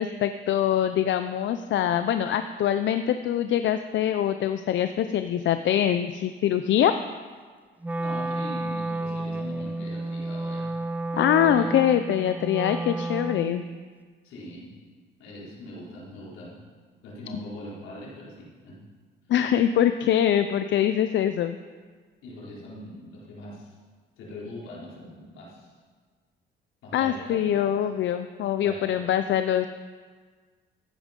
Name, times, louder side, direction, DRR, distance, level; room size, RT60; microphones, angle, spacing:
voice 1, 0.0-7.0 11.1-13.7 19.3-21.6 26.9-29.7, left 10 dB, 70° left, 9 dB, 0.6 m, -24 dB
Wind instrument woodwind instrument, 7.8-13.8, right 2 dB, 10° right, 0.6 m, -31 dB
voice 2, 7.9-10.8 11.4-11.7 14.2-14.7 15.2-16.6 17.0-18.8 22.2-23.8 24.2-25.7 26.8-27.8 28.6-29.1, left 1 dB, 85° left, -6 dB, 4.5 m, -41 dB
14.5 x 10.0 x 5.3 m, 1.5 s
cardioid pair, 90°, 20 cm